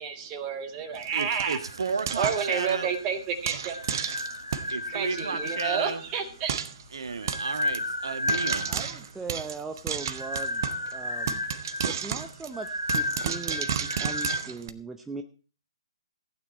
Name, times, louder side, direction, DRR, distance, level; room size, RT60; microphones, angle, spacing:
voice 1, 0.0-1.6 2.2-3.8 4.9-6.5, right 6 dB, 25° right, 6 dB, 1.9 m, -30 dB
Frying (food), 0.9-2.9 3.4-4.8 5.2-5.3 5.5-5.6 5.9-6.0 6.5-6.8 7.3-7.8 8.3-10.9 11.3-14.7, right 8 dB, 40° right, 1.0 m, -33 dB
voice 2, 1.1-2.9 4.7-6.0 6.9-8.7, right 5 dB, 60° right, 9 dB, 1.5 m, -33 dB
sound 1, 1.4-3.2 3.7-6.1 6.8-9.0 9.9-14.4, left 2 dB, 85° left, 2.9 m, -33 dB
voice 3, 8.7-10.6 10.9-11.4 11.8-15.2, right 4 dB, 5° right, 5 dB, 0.6 m, -39 dB
15.5 x 9.2 x 4.4 m, 0.37 s
figure-of-eight pair, 130°, 3 cm